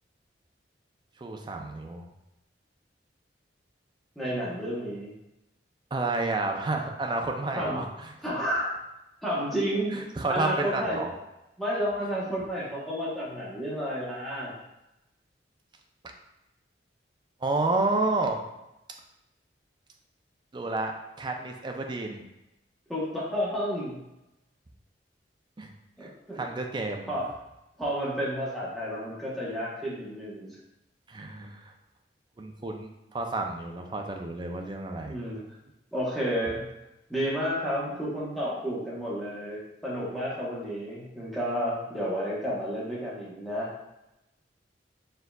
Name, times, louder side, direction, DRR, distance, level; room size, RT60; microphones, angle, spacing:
voice 1, 1.2-2.0 5.9-8.1 9.9-11.1 17.4-18.4 20.5-22.2 25.6-25.7 26.0-26.1 26.3-27.1 31.1-31.7 32.4-35.1, right 2 dB, 25° right, 3 dB, 0.4 m, -30 dB
voice 2, 4.2-5.1 7.5-7.8 8.2-8.7 9.2-9.9 10.3-11.0 11.6-14.5 22.9-24.0 26.0-26.4 27.1-27.3 27.8-30.6 35.1-35.4 35.9-36.6 37.1-43.7, equal, ahead, -7 dB, 1.0 m, -31 dB
4.4 x 3.7 x 2.3 m, 0.93 s
head